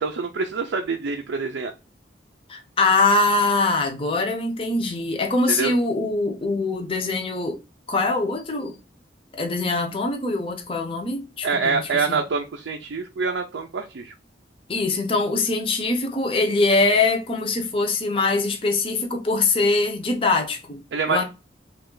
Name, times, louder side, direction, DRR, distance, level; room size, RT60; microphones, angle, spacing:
voice 1, 0.0-1.7 5.5-5.7 11.4-14.1 20.9-21.2, right 4 dB, 85° right, 0.4 m, -25 dB
voice 2, 2.5-7.6 7.9-8.8 9.3-12.2 14.7-20.8 21.1-21.2, left 3 dB, 30° left, 0.6 m, -23 dB
3.1 x 2.3 x 3.7 m
head